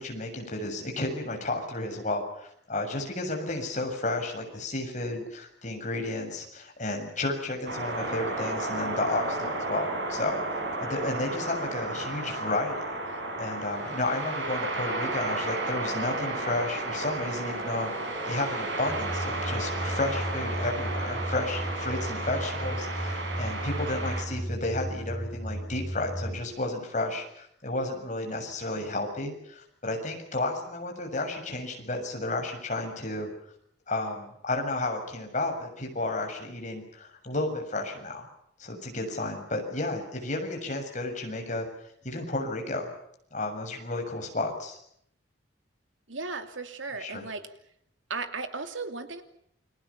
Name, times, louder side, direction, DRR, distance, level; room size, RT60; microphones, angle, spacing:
voice 1, 0.0-17.9 18.2-33.3 33.9-38.3 38.6-41.7 42.0-42.9 43.3-44.8 47.0-47.3, left 2 dB, 40° left, 3 dB, 7.0 m, -32 dB
sound 1, 7.7-24.2, right 2 dB, 60° right, 7.7 m, -33 dB
sound 2, 18.9-26.4, right 1 dB, 20° right, 6.6 m, -34 dB
voice 2, 46.1-47.5 48.1-49.2, right 4 dB, 80° right, 8 dB, 2.8 m, -35 dB
29.0 x 23.0 x 7.1 m, 0.71 s
head